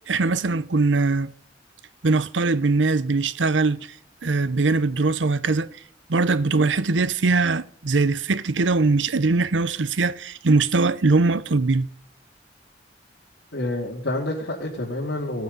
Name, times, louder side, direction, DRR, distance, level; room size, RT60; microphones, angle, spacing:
voice 1, 0.1-1.3 2.0-3.9 4.2-5.7 6.1-11.9, right 3 dB, 90° right, 0.7 m, -21 dB
voice 2, 13.5-15.4, left 1 dB, 80° left, 2.6 m, -28 dB
17.0 x 9.4 x 5.4 m
head